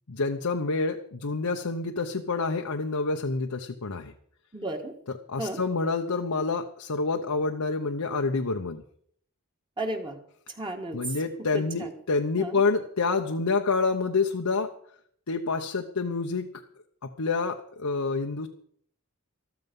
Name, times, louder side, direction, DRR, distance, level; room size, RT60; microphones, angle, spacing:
voice 1, 0.1-4.1 5.3-8.8 10.9-14.7 15.3-16.5 17.0-18.5, left 4 dB, 85° left, 4 dB, 0.9 m, -28 dB
voice 2, 4.5-4.9 5.4-5.6 9.8-10.2 10.6-11.0 11.5-11.9 12.4-12.6, right 1 dB, 20° right, 4 dB, 1.8 m, -33 dB
13.5 x 13.5 x 5.4 m, 0.62 s
head